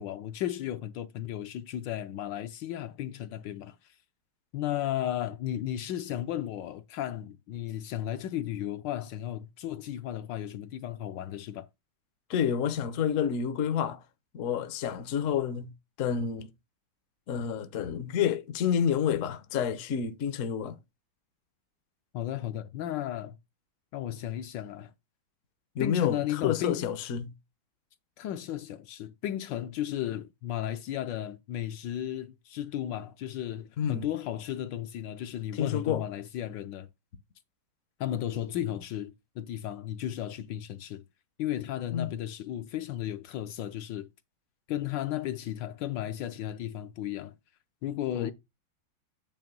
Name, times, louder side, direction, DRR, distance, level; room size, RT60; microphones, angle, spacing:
voice 1, 0.0-4.0 4.5-11.7 22.1-23.4 23.9-24.9 25.8-26.9 28.2-36.9 38.0-41.0 41.4-44.1 44.7-47.4 47.8-48.3, left 12 dB, 75° left, 1.2 m, -34 dB
voice 2, 12.3-14.0 14.3-15.7 16.0-16.5 17.3-20.8 25.7-27.3 33.8-34.0 35.5-36.0 41.9-42.1 48.1-48.3, left 8 dB, 60° left, 0.9 m, -29 dB
8.9 x 3.0 x 5.2 m
omnidirectional pair, 2.2 m